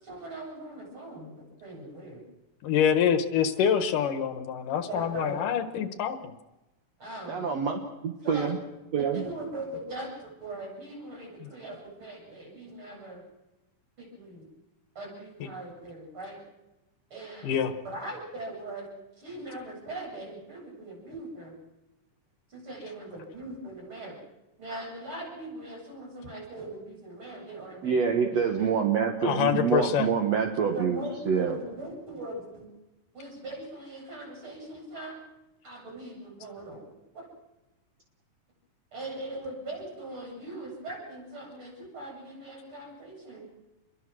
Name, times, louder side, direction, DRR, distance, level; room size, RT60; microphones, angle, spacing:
voice 1, 0.0-2.2 4.9-5.4 7.0-7.6 8.2-8.5 9.0-13.2 14.0-14.5 15.0-16.4 17.1-21.6 22.5-24.2 24.6-28.7 30.7-32.7 33.1-35.2 35.6-36.8 37.1-37.3 38.9-43.5, right 1 dB, 40° right, -2 dB, 9.0 m, -40 dB
voice 2, 2.6-6.2 11.4-11.5 17.4-17.7 29.2-30.1, left 8 dB, 85° left, 9 dB, 3.0 m, -26 dB
voice 3, 7.3-8.6 8.9-9.2 27.8-31.0 31.3-31.6, right 6 dB, 60° right, 2 dB, 2.6 m, -26 dB
27.5 x 22.0 x 6.3 m, 0.98 s
omnidirectional pair, 3.6 m